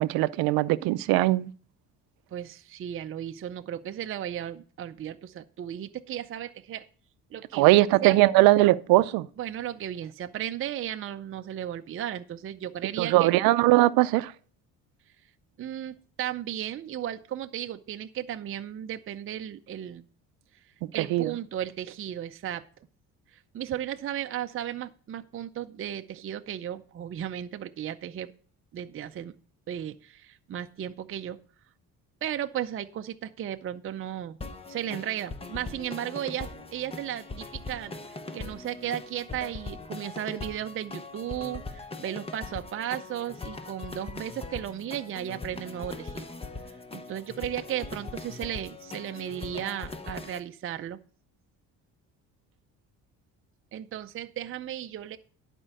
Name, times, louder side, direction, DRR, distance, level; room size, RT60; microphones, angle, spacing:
voice 1, 0.0-1.5 7.5-9.3 13.0-14.3 21.1-21.3, right 18 dB, 90° right, 0.5 m, -20 dB
voice 2, 2.3-6.9 7.3-8.2 9.4-13.3 15.6-20.1 20.9-22.7 23.3-28.3 28.7-29.3 29.7-31.4 32.2-34.4 34.7-46.3 46.9-51.0 53.7-55.2, right 11 dB, 35° right, 0.5 m, -35 dB
sound 1, 34.4-50.4, left 3 dB, 15° left, 0.8 m, -41 dB
11.0 x 4.5 x 6.4 m
cardioid pair, 100°, 35 cm